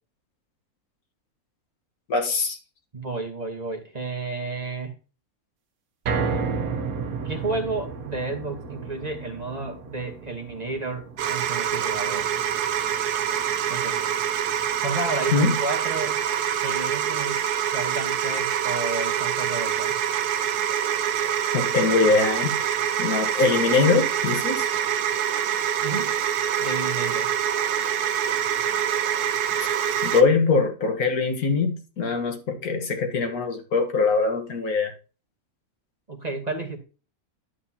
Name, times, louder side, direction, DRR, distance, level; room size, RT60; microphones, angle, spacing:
voice 1, 2.1-2.6 15.3-15.6 21.5-22.6 23.0-24.7 29.6-29.7 30.0-34.9, left 4 dB, 70° left, 1.9 m, -22 dB
voice 2, 2.9-5.0 7.2-12.3 13.7-14.0 14.8-19.9 25.8-26.2 26.6-27.3 36.1-36.8, right 3 dB, 30° right, 1.2 m, -32 dB
sound 1, 6.0-18.3 18.7-18.8 19.2-19.3, right 5 dB, 70° right, 1.4 m, -34 dB
sound 2, 11.2-30.2, right 9 dB, 85° right, 1.2 m, -25 dB
11.0 x 7.8 x 2.8 m
omnidirectional pair, 1.6 m